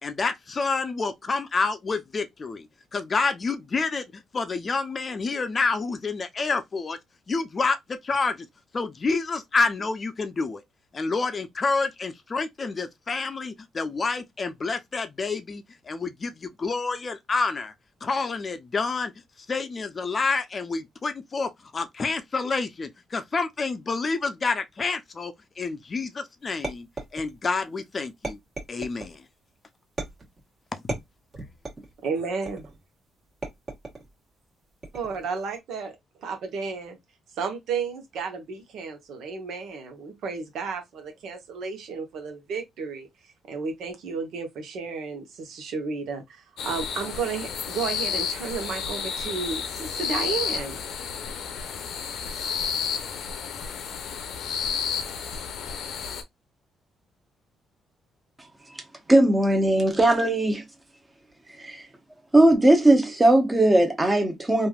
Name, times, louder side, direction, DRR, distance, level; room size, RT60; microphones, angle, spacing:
voice 1, 0.0-7.0 7.3-8.5 8.7-10.6 10.9-17.7 18.0-19.1 19.5-26.9 27.1-28.4 28.7-29.2 30.7-30.8, left 4 dB, 35° left, 0.5 m, -28 dB
sound 1, 26.6-27.6 28.2-29.2 30.0-30.4 30.9-31.9 32.5-32.9 33.4-34.1 34.8-35.3, right 2 dB, 35° right, 1.4 m, -36 dB
voice 2, 32.0-32.7 34.9-35.9 36.2-37.0 37.4-43.1 43.5-50.8, right 5 dB, 75° right, 1.0 m, -32 dB
sound 2, 46.6-56.2, left 6 dB, 75° left, 0.6 m, -31 dB
voice 3, 59.1-60.6 61.6-61.8 62.3-64.7, right 1 dB, 15° right, 1.0 m, -19 dB
3.2 x 2.5 x 2.3 m
cardioid pair, 90°, 0 cm